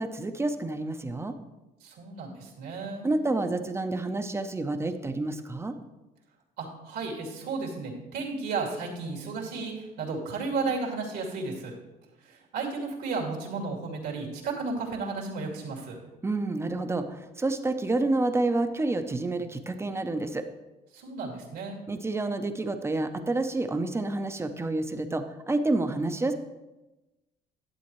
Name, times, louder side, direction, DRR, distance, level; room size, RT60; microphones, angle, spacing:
voice 1, 0.0-1.3 3.0-5.8 16.2-20.5 21.9-26.3, right 2 dB, 15° right, 8 dB, 0.7 m, -29 dB
voice 2, 1.8-3.1 6.6-11.7 12.2-16.0 20.9-21.8, right 4 dB, 80° right, -1 dB, 2.4 m, -33 dB
11.5 x 7.7 x 3.1 m, 1.0 s
cardioid pair, 110°, 17 cm